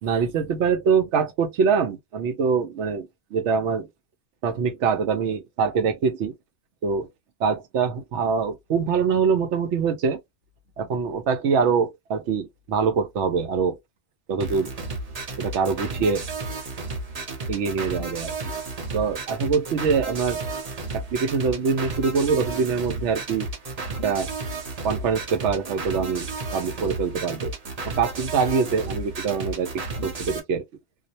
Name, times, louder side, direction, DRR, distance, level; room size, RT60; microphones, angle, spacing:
voice 1, 0.0-3.9 4.4-6.3 6.8-7.1 7.4-10.2 10.8-13.8 14.3-14.7 15.4-16.3 17.5-18.5 18.9-20.4 20.9-23.5 24.0-24.3 24.8-27.5 27.8-30.6, right 5 dB, 80° right, 0.9 m, -24 dB
sound 1, 14.4-30.4, right 3 dB, 40° right, 0.6 m, -33 dB
2.4 x 2.0 x 2.7 m
omnidirectional pair, 1.2 m